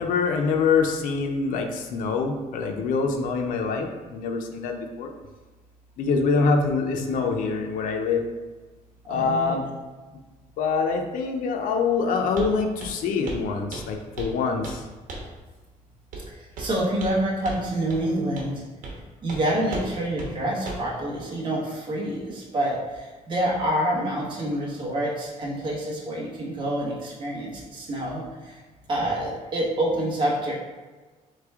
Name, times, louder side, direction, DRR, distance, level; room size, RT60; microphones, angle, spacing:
voice 1, 0.0-5.1 6.0-8.2 9.1-9.6 10.6-14.6, left 4 dB, 85° left, 3 dB, 0.5 m, -25 dB
voice 2, 9.1-9.5 16.3-18.6 19.2-28.6 28.9-30.5, right 1 dB, 35° right, -4 dB, 1.1 m, -27 dB
Walk footsteps, 12.4-12.5 12.8-13.0 13.3-13.4 13.7-14.4 14.6-14.8 15.1-15.3 16.1-16.3 16.6-17.2 17.4-17.6 17.9-18.0 18.4-18.5 18.8-19.0 19.3-19.4 19.7-19.9 20.2-20.3 20.7-20.9, right 2 dB, 75° right, 1.0 m, -35 dB
4.1 x 3.3 x 3.5 m, 1.3 s
cardioid pair, 150°, 13 cm